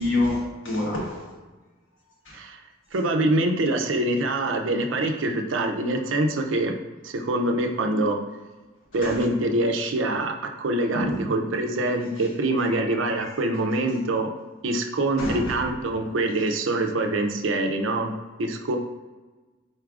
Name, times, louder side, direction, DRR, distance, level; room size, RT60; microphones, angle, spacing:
voice 1, 0.0-1.3 2.2-2.4 9.0-9.3 10.9-11.3 12.2-12.3 12.6-13.8 15.2-15.7, left 1 dB, 85° left, -3 dB, 1.3 m, -29 dB
voice 2, 2.9-6.7 7.0-8.2 8.9-14.3 14.6-18.1 18.4-18.8, right 2 dB, 85° right, 4 dB, 0.5 m, -25 dB
4.7 x 4.3 x 2.4 m, 1.2 s
head